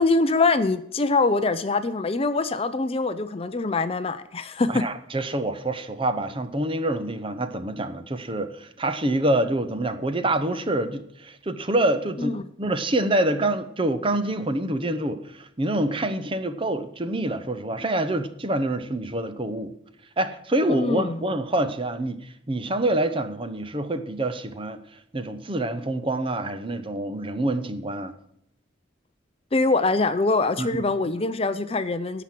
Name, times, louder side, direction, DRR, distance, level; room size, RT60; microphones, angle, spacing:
voice 1, 0.0-4.9 12.2-12.4 20.7-21.2 29.5-32.2, left 3 dB, 30° left, 12 dB, 0.5 m, -23 dB
voice 2, 4.7-19.7 20.2-24.8 25.1-28.1 30.6-30.8, right 1 dB, 25° right, 10 dB, 0.8 m, -26 dB
16.0 x 6.0 x 7.5 m, 0.73 s
head